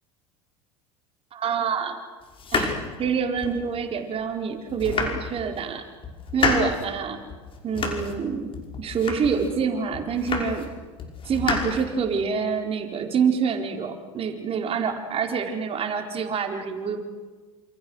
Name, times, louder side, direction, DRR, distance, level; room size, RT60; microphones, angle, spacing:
voice 1, 1.3-2.0 2.5-5.9 6.3-7.2 7.6-10.7 11.2-17.0, right 6 dB, 35° right, 4 dB, 4.5 m, -26 dB
sound 1, 2.3-3.7 4.2-4.3 4.7-5.6 6.0-6.9 7.3-8.2 8.5-9.5 9.9-10.7 11.0-12.3, left 4 dB, 35° left, 5.6 m, -29 dB
29.0 x 28.0 x 6.5 m, 1.3 s
hypercardioid pair, 80°, 16 cm